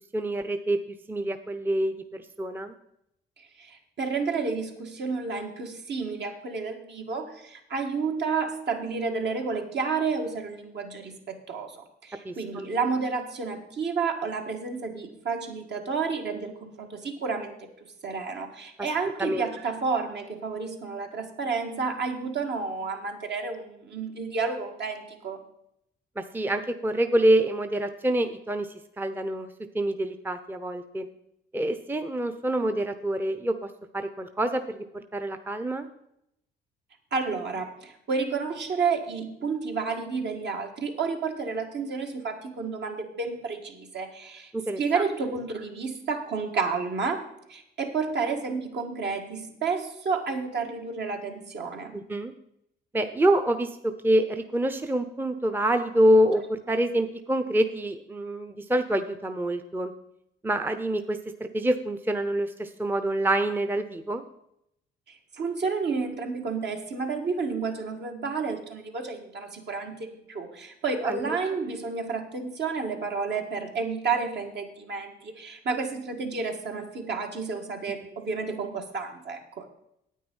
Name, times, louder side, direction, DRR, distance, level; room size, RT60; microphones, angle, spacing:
voice 1, 0.1-0.8 1.1-2.7 12.2-12.7 19.0-19.5 26.2-28.7 29.0-29.5 29.7-31.1 31.5-33.7 33.9-35.9 44.5-45.0 51.9-52.3 52.9-53.8 54.0-59.9 60.4-64.2 71.0-71.4, right 1 dB, 10° right, 8 dB, 0.7 m, -26 dB
voice 2, 3.4-25.5 37.1-44.5 44.8-52.0 65.1-79.7, right 4 dB, 60° right, 3 dB, 1.9 m, -31 dB
9.3 x 8.8 x 5.4 m, 0.77 s
cardioid pair, 90°, 20 cm